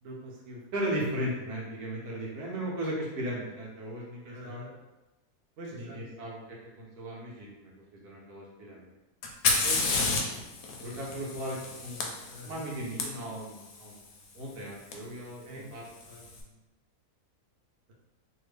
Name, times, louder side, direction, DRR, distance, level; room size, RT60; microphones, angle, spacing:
voice 1, 0.0-0.7 4.2-4.7 5.6-6.0 9.6-10.3 12.3-12.6 15.5-15.7, right 1 dB, 55° right, -3 dB, 0.7 m, -44 dB
voice 2, 0.7-4.6 5.7-8.9 10.8-13.9 14.3-16.2, right 1 dB, 70° right, -4 dB, 1.3 m, -37 dB
Fire, 9.2-13.0 14.9-15.0 15.8-16.3, left 3 dB, 70° left, 1.0 m, -30 dB
2.9 x 2.6 x 3.2 m, 1.0 s
omnidirectional pair, 1.7 m